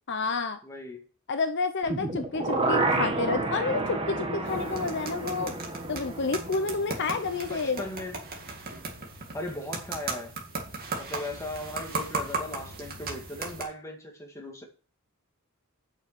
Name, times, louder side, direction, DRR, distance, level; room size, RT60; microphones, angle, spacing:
voice 1, 0.1-0.6 1.3-5.5 5.9-7.8, left 4 dB, 55° left, 0.7 m, -29 dB
voice 2, 0.6-1.0 7.3-8.2 9.3-10.3 11.0-14.6, left 1 dB, 15° left, 2.2 m, -38 dB
sound 1, 1.8-7.9 8.2-8.3, right 2 dB, 25° right, 1.5 m, -30 dB
sound 2, 4.5-13.6, right 3 dB, 45° right, 2.2 m, -37 dB
7.8 x 6.3 x 6.9 m
head